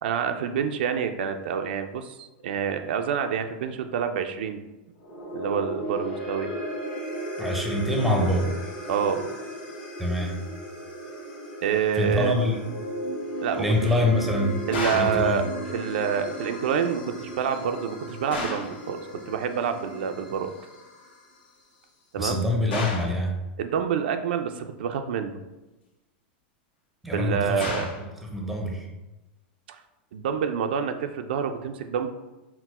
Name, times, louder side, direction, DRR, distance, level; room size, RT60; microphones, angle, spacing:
voice 1, 0.0-4.6 5.3-6.5 8.9-9.3 11.6-12.3 13.4-13.7 14.7-15.5 15.7-20.5 22.1-22.4 23.6-25.4 27.1-27.9 29.7-29.8 30.1-32.1, right 7 dB, 80° right, 7 dB, 0.4 m, -27 dB
sound 1, 5.0-21.4, right 1 dB, 65° left, 1.5 m, -36 dB
voice 2, 7.4-8.5 10.0-10.5 11.9-12.6 13.6-14.6 14.9-15.4 22.2-23.4 27.0-27.7 28.0-28.9, left 1 dB, ahead, 1 dB, 0.5 m, -25 dB
sound 2, 14.7-15.3 18.3-18.8 22.7-23.2 27.6-28.1, left 3 dB, 90° left, 1.1 m, -31 dB
4.4 x 2.0 x 4.1 m, 1.0 s
supercardioid pair, 155°, 6 cm